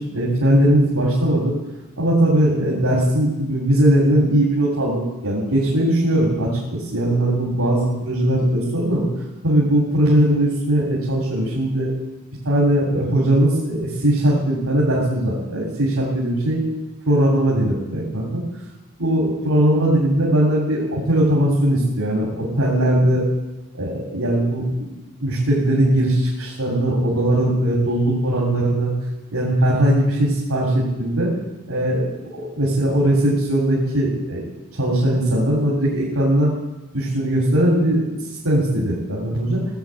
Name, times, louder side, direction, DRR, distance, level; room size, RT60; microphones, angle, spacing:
voice 1, 0.0-1.5 2.0-9.0 9.4-11.9 12.4-16.6 17.1-18.4 19.0-23.2 23.7-28.9 29.3-31.3 31.7-34.4 34.7-36.5 36.9-38.2 38.4-39.6, right 1 dB, 85° right, -5 dB, 3.1 m, -19 dB
16.5 x 8.0 x 7.6 m, 1.1 s
head